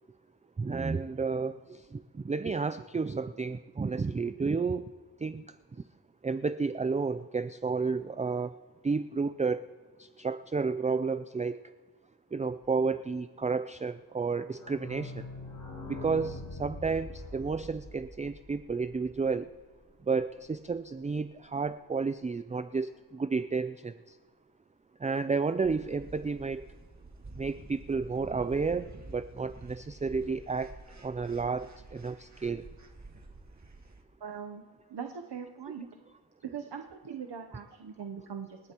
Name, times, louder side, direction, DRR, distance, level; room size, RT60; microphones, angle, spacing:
voice 1, 0.6-4.9 5.2-5.4 6.2-8.5 8.8-9.7 10.0-11.6 12.3-15.3 15.9-19.5 20.1-24.2 25.0-26.7 27.4-30.7 31.0-32.6, right 4 dB, 20° right, 12 dB, 0.4 m, -31 dB
sound 1, 14.2-19.8 20.1-20.2 20.4-20.5 20.7-20.8, left 2 dB, 65° left, 4.0 m, -44 dB
sound 2, 25.6-34.0, right 2 dB, 45° right, 1.9 m, -49 dB
voice 2, 34.2-34.6 34.9-35.9 36.4-38.6, right 7 dB, 85° right, 4 dB, 0.9 m, -41 dB
29.0 x 11.5 x 3.0 m, 1.5 s
cardioid pair, 60°, 40 cm